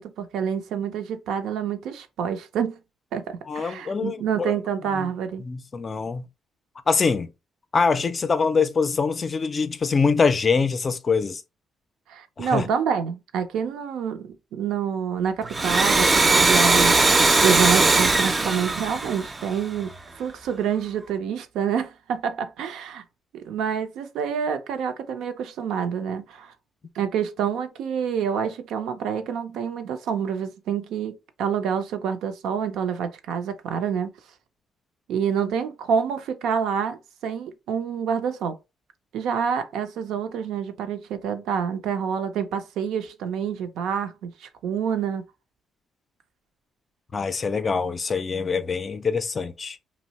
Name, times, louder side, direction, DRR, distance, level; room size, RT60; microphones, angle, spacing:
voice 1, 0.0-2.8 3.1-5.4 12.1-17.1 17.4-23.0 23.3-26.5 26.9-34.1 35.1-38.6 39.1-45.2, right 7 dB, 85° right, 0.5 m, -27 dB
voice 2, 3.5-4.5 5.0-5.1 5.4-6.2 6.9-7.3 7.7-11.4 12.4-12.7 47.1-49.8, left 5 dB, 35° left, 0.4 m, -24 dB
Domestic sounds home sounds, 15.4-19.9, right 3 dB, 25° right, 0.5 m, -19 dB
2.7 x 2.0 x 3.9 m
cardioid pair, 90°, 0 cm